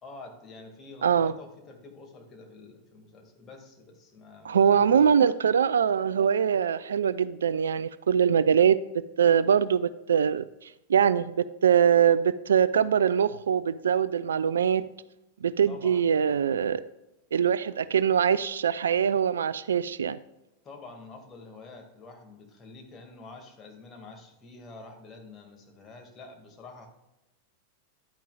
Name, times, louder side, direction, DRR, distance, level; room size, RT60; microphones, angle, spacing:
voice 1, 0.0-5.1 15.7-16.0 20.6-26.9, left 3 dB, 25° left, 3 dB, 2.1 m, -47 dB
voice 2, 1.0-1.3 4.4-14.9 15.4-16.8 17.3-20.2, right 8 dB, 65° right, 16 dB, 0.3 m, -23 dB
11.5 x 9.2 x 2.4 m, 0.92 s
figure-of-eight pair, 90°, 0 cm